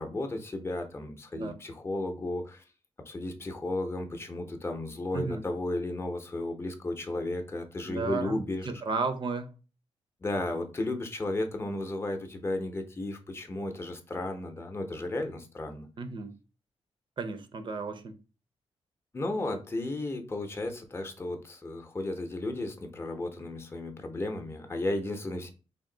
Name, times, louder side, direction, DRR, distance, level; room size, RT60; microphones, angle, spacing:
voice 1, 0.0-2.6 3.1-8.7 10.2-15.9 19.1-25.5, left 2 dB, 20° left, 0.7 m, -34 dB
voice 2, 7.9-9.5 16.0-16.3 17.2-18.1, right 4 dB, 45° right, 0.6 m, -33 dB
3.5 x 2.6 x 3.8 m
cardioid pair, 110°, 11 cm